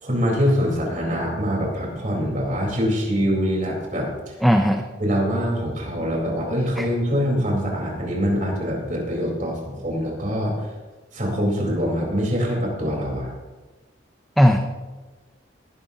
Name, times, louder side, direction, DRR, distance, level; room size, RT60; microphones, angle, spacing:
voice 1, 0.0-4.1 5.0-10.5 11.1-13.3, equal, 45° right, -2 dB, 4.1 m, -24 dB
voice 2, 4.4-4.8 6.8-6.9 14.4-14.6, equal, ahead, 4 dB, 0.6 m, -16 dB
19.5 x 11.5 x 2.9 m, 1.2 s
head